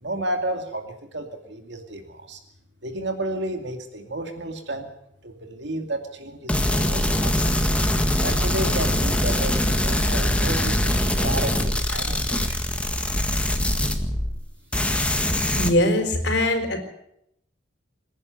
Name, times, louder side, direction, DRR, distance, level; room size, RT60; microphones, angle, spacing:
voice 1, 0.0-2.4 2.8-4.9 5.2-7.5 8.2-12.6, right 1 dB, 65° right, 5 dB, 2.5 m, -32 dB
sound 1, 6.5-14.4 14.7-15.7, left 1 dB, 5° left, 1.8 m, -23 dB
voice 2, 15.5-16.8, left 1 dB, 60° left, 6 dB, 4.3 m, -21 dB
26.5 x 11.0 x 9.4 m, 0.78 s
head